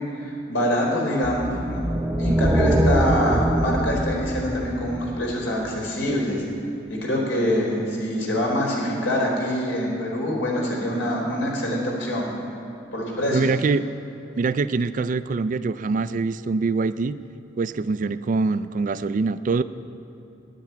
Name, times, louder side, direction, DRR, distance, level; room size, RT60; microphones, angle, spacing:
voice 1, 0.0-1.8 2.1-6.4 6.9-12.3 12.9-13.5, equal, 85° left, -2 dB, 3.7 m, -25 dB
sound 1, 1.2-5.7, right 1 dB, 10° right, 0.7 m, -23 dB
voice 2, 13.3-13.8 14.4-17.2 17.6-19.6, right 4 dB, 40° right, 14 dB, 0.3 m, -24 dB
10.5 x 9.6 x 9.2 m, 2.9 s
head